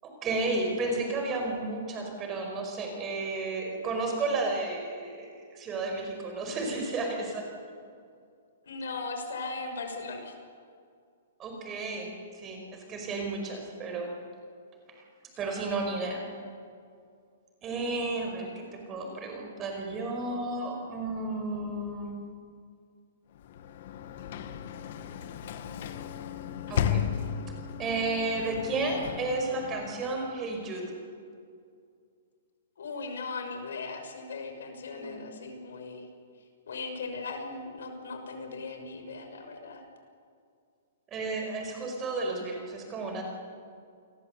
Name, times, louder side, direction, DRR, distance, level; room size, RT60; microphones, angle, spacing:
voice 1, 0.0-7.5 11.4-12.1 12.3-14.1 15.0-15.1 15.4-16.3 17.6-22.2 26.7-27.0 27.8-30.9 34.9-35.3 41.1-43.2, right 3 dB, 15° right, 2 dB, 5.1 m, -32 dB
voice 2, 8.7-10.3 32.8-36.1 36.7-39.8, left 3 dB, 80° left, 6 dB, 5.9 m, -38 dB
Sliding door / Slam, 23.3-30.4, left 8 dB, 45° left, 1.7 m, -35 dB
29.5 x 21.5 x 8.2 m, 2.3 s
hypercardioid pair, 170°, 0 cm